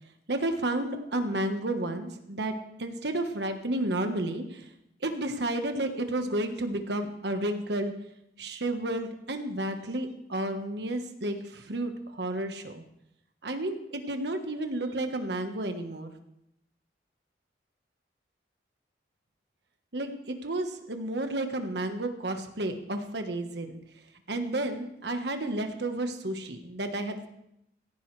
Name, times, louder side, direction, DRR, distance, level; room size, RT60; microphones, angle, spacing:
voice 1, 0.3-4.7 5.0-7.9 8.4-12.8 13.4-16.1 19.9-23.8 24.3-27.3, right 1 dB, 75° right, 6 dB, 1.3 m, -31 dB
16.5 x 15.0 x 3.3 m, 0.80 s
head